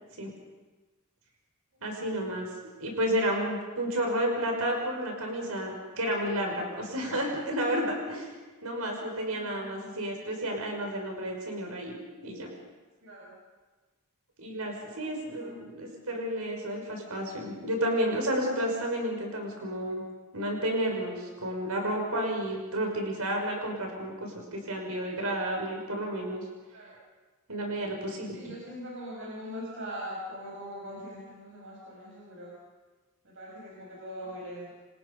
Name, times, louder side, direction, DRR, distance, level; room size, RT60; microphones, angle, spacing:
voice 1, 1.8-2.5 2.8-8.3 8.6-12.5 14.4-20.0 20.3-26.4 27.5-28.4, equal, 90° right, 1 dB, 5.9 m, -31 dB
voice 2, 9.3-9.9 13.0-13.3 14.9-15.7 26.7-27.0 28.3-32.6 33.2-34.7, equal, 60° right, -4 dB, 7.5 m, -42 dB
29.5 x 26.5 x 5.5 m, 1.3 s
head